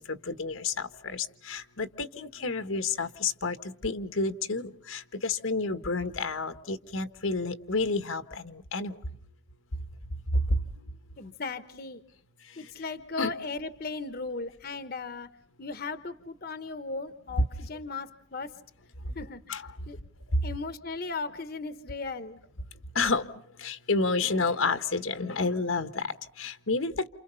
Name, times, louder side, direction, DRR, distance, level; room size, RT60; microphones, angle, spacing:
voice 1, 0.0-9.0 10.5-10.6 13.2-13.3 19.5-19.6 20.3-20.4 22.9-23.3 23.6-27.1, left 3 dB, 80° left, 10 dB, 1.4 m, -30 dB
voice 2, 11.2-12.0 12.6-15.3 15.6-18.6 19.1-19.4 19.9-20.0 20.4-22.4, left 3 dB, 45° left, 12 dB, 1.0 m, -37 dB
29.5 x 29.0 x 5.6 m, 0.65 s
head